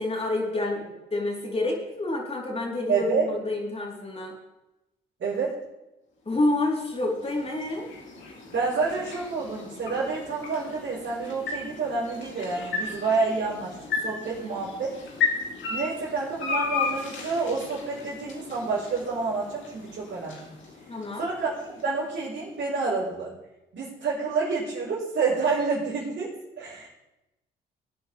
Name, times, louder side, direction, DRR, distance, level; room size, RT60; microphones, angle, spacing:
voice 1, 0.0-4.3 6.3-7.9 20.9-21.3, left 2 dB, 30° left, -2 dB, 4.3 m, -28 dB
voice 2, 2.9-3.3 5.2-5.6 8.5-13.8 14.0-15.0 15.7-20.5 21.2-23.4 23.7-26.3 26.6-26.9, right 4 dB, 60° right, -8 dB, 4.9 m, -28 dB
sound 1, 6.4-22.6, left 5 dB, 65° left, 3.2 m, -35 dB
19.0 x 9.1 x 3.6 m, 0.96 s
hypercardioid pair, 55°, 21 cm